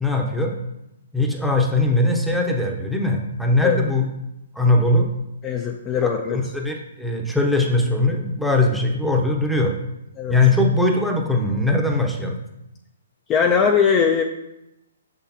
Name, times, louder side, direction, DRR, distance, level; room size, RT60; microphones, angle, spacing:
voice 1, 0.0-0.6 1.1-4.0 4.6-5.1 6.0-9.7 10.3-12.4, left 2 dB, ahead, 1 dB, 0.8 m, -20 dB
voice 2, 5.4-6.4 10.2-10.4 13.3-14.2, left 6 dB, 25° left, 3 dB, 0.5 m, -20 dB
6.3 x 6.0 x 2.9 m, 0.89 s
hypercardioid pair, 145°, 0 cm